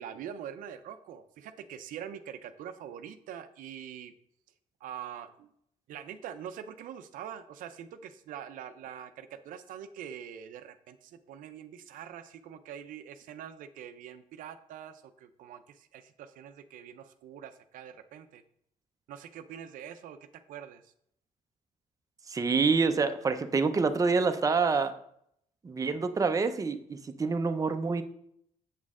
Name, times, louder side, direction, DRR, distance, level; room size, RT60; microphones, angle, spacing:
voice 1, 0.0-4.1 4.8-5.5 5.9-18.4 19.1-20.9, right 9 dB, 80° right, 10 dB, 0.5 m, -44 dB
voice 2, 22.3-24.9 25.6-28.0, right 4 dB, 25° right, 8 dB, 0.6 m, -27 dB
7.3 x 6.3 x 3.6 m, 0.71 s
cardioid pair, 100°, 14 cm